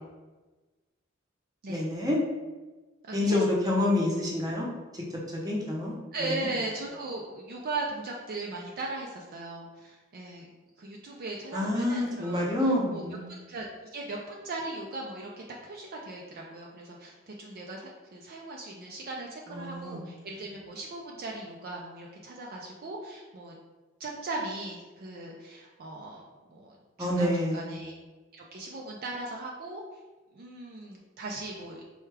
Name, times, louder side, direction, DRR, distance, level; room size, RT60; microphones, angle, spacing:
voice 1, 1.7-2.2 3.1-4.7 4.9-5.0 5.3-5.9 6.2-6.5 11.5-13.2 19.5-20.0 27.0-27.6, left 1 dB, 20° right, -3 dB, 0.7 m, -28 dB
voice 2, 3.0-3.4 6.1-10.5 10.8-13.0 13.3-23.6 24.0-26.2 26.5-28.0 28.3-29.8 30.3-31.8, right 2 dB, 50° right, -1 dB, 0.4 m, -38 dB
4.4 x 2.3 x 3.3 m, 1.2 s
head